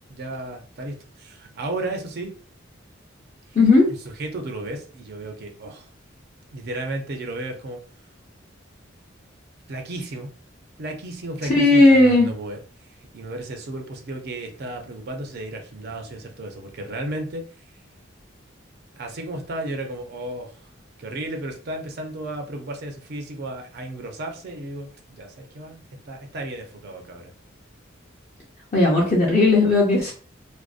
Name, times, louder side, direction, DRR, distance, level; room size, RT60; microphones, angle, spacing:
voice 1, 0.1-2.3 4.2-5.9 6.5-7.8 9.7-10.3 10.8-12.6 13.1-17.4 19.0-20.7 21.0-27.3, right 1 dB, 55° right, 4 dB, 0.5 m, -33 dB
voice 2, 11.5-12.3 28.7-30.1, left 2 dB, 35° left, -4 dB, 0.6 m, -16 dB
2.5 x 2.0 x 2.4 m, 0.39 s
head